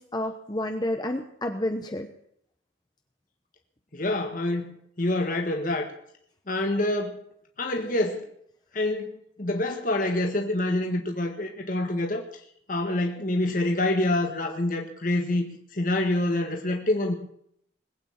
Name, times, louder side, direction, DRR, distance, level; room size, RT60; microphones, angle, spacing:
voice 1, 0.0-2.1, left 1 dB, 20° left, 1.0 m, -30 dB
voice 2, 3.9-5.9 6.5-7.2 7.6-8.3 8.7-12.2 12.7-17.1, left 1 dB, 45° left, 1.6 m, -26 dB
21.0 x 9.0 x 7.3 m
head